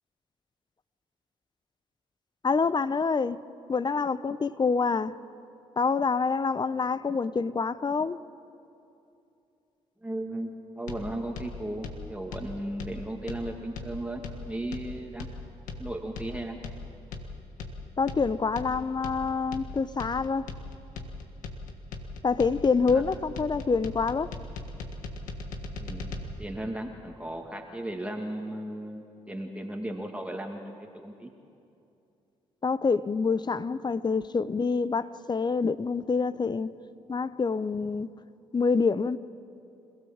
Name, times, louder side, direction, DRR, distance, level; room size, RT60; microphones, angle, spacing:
voice 1, 2.4-3.4 3.7-5.1 5.8-8.2 18.0-20.5 22.2-24.3 32.6-36.7 37.1-38.1 38.5-39.2, left 4 dB, 35° left, 0.8 m, -26 dB
voice 2, 10.0-15.3 15.8-16.6 22.9-23.0 25.8-26.1 26.4-31.3, right 1 dB, 10° right, 2.2 m, -36 dB
sound 1, 10.9-26.2, left 3 dB, 80° left, 1.7 m, -39 dB
26.0 x 17.0 x 7.3 m
hypercardioid pair, 45°, 13 cm